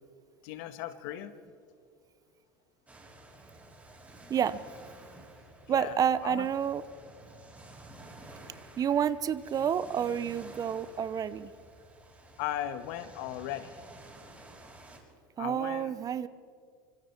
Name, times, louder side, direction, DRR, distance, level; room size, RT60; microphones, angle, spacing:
voice 1, 0.4-1.3 5.7-6.0 6.2-6.5 12.4-13.8 15.4-15.9, left 12 dB, 70° left, 10 dB, 1.5 m, -37 dB
sound 1, 2.9-15.0, right 2 dB, 15° right, 6.0 m, -52 dB
voice 2, 4.3-4.6 5.7-6.8 8.8-11.5 15.4-16.3, right 8 dB, 35° right, 16 dB, 0.8 m, -29 dB
25.0 x 24.5 x 4.6 m, 2.3 s
supercardioid pair, 100°, 11 cm